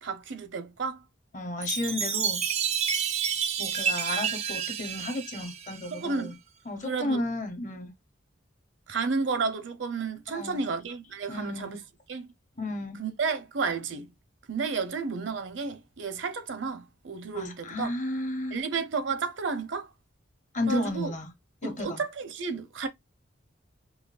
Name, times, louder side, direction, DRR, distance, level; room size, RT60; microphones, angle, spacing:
voice 1, 0.0-1.0 5.9-6.4 6.8-7.2 8.9-11.8 12.1-12.3 13.0-14.1 14.5-17.9 18.5-19.9 20.7-21.1 21.6-22.9, right 4 dB, 70° right, 0.7 m, -32 dB
voice 2, 1.3-2.4 3.6-6.3 6.7-7.9 10.3-10.7 11.3-11.8 12.6-13.0 17.3-18.6 20.5-21.3 21.6-22.0, left 1 dB, 40° left, 0.7 m, -33 dB
Chime, 1.6-6.2, right 7 dB, 35° right, 0.4 m, -30 dB
5.6 x 2.2 x 2.4 m
head